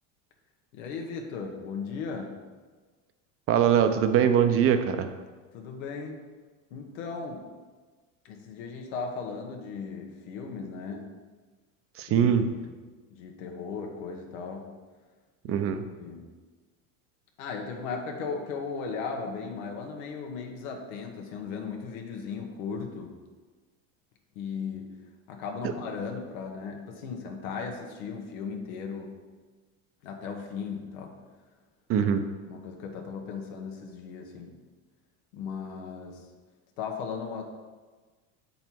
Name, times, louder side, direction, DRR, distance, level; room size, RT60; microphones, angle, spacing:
voice 1, 0.7-2.4 5.5-6.2 6.7-7.5 8.2-11.1 12.1-12.8 13.2-14.7 15.4-15.6 16.0-16.3 17.4-23.1 24.3-24.9 25.3-29.2 30.0-31.2 31.9-32.1 32.5-34.6 35.3-36.2 36.8-37.4, left 5 dB, 90° left, 2 dB, 1.2 m, -37 dB
voice 2, 3.5-5.1 12.0-12.5 15.5-15.8 31.9-32.2, right 8 dB, 35° right, 8 dB, 0.6 m, -22 dB
7.2 x 5.4 x 4.5 m, 1.4 s
supercardioid pair, 135°, 40 cm